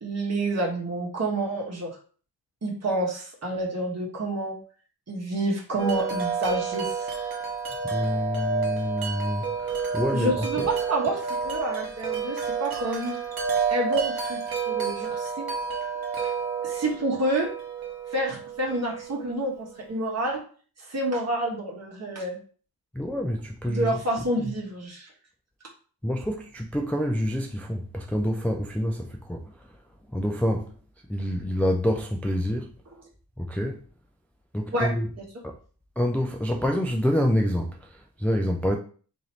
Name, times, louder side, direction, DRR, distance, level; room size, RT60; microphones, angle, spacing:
voice 1, 0.0-2.0 2.6-4.5 5.1-7.1 10.1-13.1 13.7-14.4 14.7-15.5 16.6-17.5 18.1-20.4 20.8-22.4 23.6-25.1 33.0-33.1 34.7-35.2, right 1 dB, 40° right, 1.2 m, -28 dB
Wind chime, 5.8-19.7, right 5 dB, 70° right, 1.0 m, -30 dB
voice 2, 7.8-10.7 22.9-24.0 24.4-24.5 26.0-29.5 30.1-30.7 31.1-32.7 33.4-33.8 34.5-35.1 36.0-38.8, equal, 5° left, 0.3 m, -27 dB
2.9 x 2.7 x 4.2 m
wide cardioid pair, 115°, 38 cm